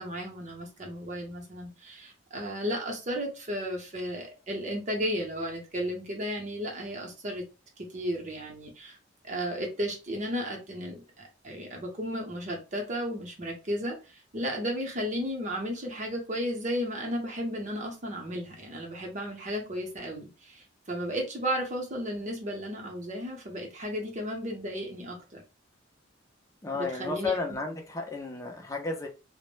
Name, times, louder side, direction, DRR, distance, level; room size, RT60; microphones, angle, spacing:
voice 1, 0.0-7.4 7.8-9.0 9.2-11.0 11.4-25.4 26.7-27.4, equal, 40° right, 0.7 m, -34 dB
voice 2, 26.6-29.1, left 3 dB, 15° left, 0.5 m, -33 dB
2.0 x 2.0 x 3.0 m
head